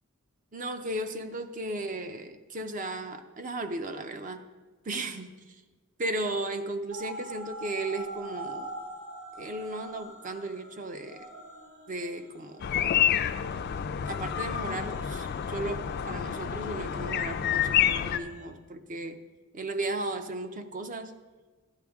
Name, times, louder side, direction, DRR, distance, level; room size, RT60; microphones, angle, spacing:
voice 1, 0.5-4.4 4.8-5.6 6.0-8.7 9.3-11.3 11.9-12.6 14.1-19.2 19.5-21.1, right 2 dB, 35° right, 8 dB, 0.5 m, -35 dB
sound 1, 6.9-18.5, right 2 dB, 65° right, 2.1 m, -45 dB
sound 2, 12.6-18.2, left 9 dB, 45° left, 0.3 m, -28 dB
12.0 x 8.5 x 3.5 m, 1.3 s
head